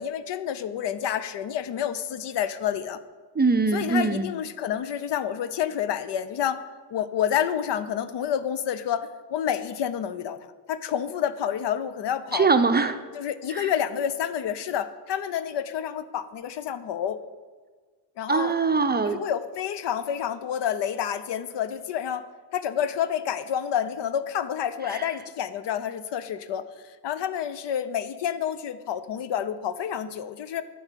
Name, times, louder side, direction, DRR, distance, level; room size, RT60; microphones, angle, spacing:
voice 1, 0.0-3.0 3.7-6.6 6.9-10.4 10.7-12.5 13.1-17.2 18.2-18.5 19.0-22.3 22.5-30.6, left 9 dB, 65° left, 13 dB, 0.7 m, -29 dB
voice 2, 3.4-4.3 12.3-13.0 13.5-13.7 18.3-19.2 24.9-25.0, right 4 dB, 20° right, 8 dB, 0.6 m, -22 dB
8.9 x 4.8 x 7.4 m, 1.4 s
cardioid pair, 75°, 45 cm